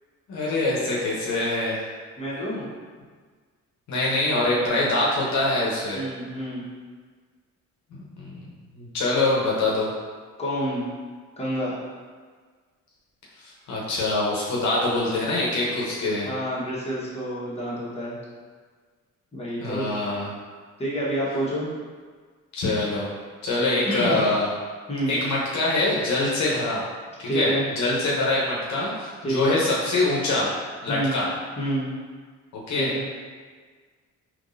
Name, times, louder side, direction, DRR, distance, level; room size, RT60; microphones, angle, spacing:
voice 1, 0.3-1.8 3.9-6.0 7.9-8.5 8.7-9.9 13.7-16.3 19.6-20.3 22.5-23.1 23.4-24.5 25.1-26.8 27.2-27.5 27.8-30.5 30.8-31.3 32.5-32.9, left 2 dB, 65° left, -5 dB, 0.9 m, -24 dB
voice 2, 2.2-2.7 5.9-6.7 10.4-10.8 11.4-11.8 16.2-18.2 19.3-19.9 20.8-21.7 23.8-24.2 24.9-25.2 27.3-27.6 29.2-29.5 30.9-31.2 31.6-31.9 32.7-33.1, right 1 dB, 20° left, -8 dB, 1.2 m, -28 dB
3.6 x 3.0 x 2.6 m, 1.5 s
cardioid pair, 90°, 30 cm